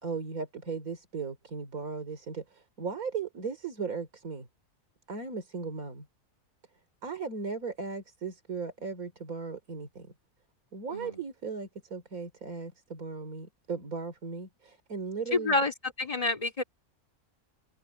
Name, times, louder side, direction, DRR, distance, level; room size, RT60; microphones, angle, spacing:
voice 1, 0.0-4.5 5.1-6.1 7.0-10.1 10.7-15.6, right 5 dB, 85° right, 3.5 m, -37 dB
voice 2, 10.9-11.2 15.3-16.6, left 2 dB, 25° left, 2.6 m, -29 dB
omnidirectional pair, 1.5 m